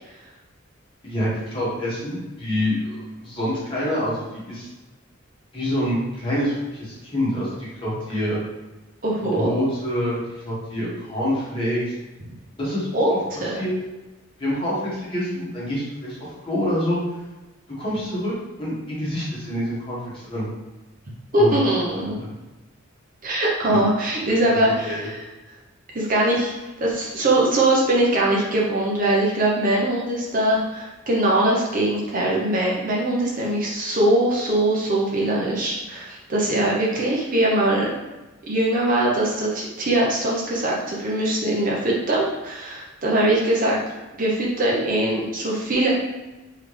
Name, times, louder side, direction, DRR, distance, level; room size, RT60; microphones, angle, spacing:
voice 1, 1.0-4.7 5.5-8.4 9.3-10.2 10.4-11.9 12.6-13.2 13.6-13.7 14.4-16.2 16.5-17.0 17.8-18.3 18.6-20.5 21.3-21.6 22.0-22.3 23.6-23.8 24.6-25.1, equal, 25° left, -7 dB, 1.4 m, -26 dB
voice 2, 9.0-9.5 12.9-13.1 13.4-13.5 21.3-22.2 23.2-24.9 25.9-26.5 26.8-37.9 38.5-43.8 44.2-45.9, right 1 dB, 40° right, -4 dB, 0.7 m, -21 dB
3.8 x 3.3 x 3.2 m, 1.1 s
head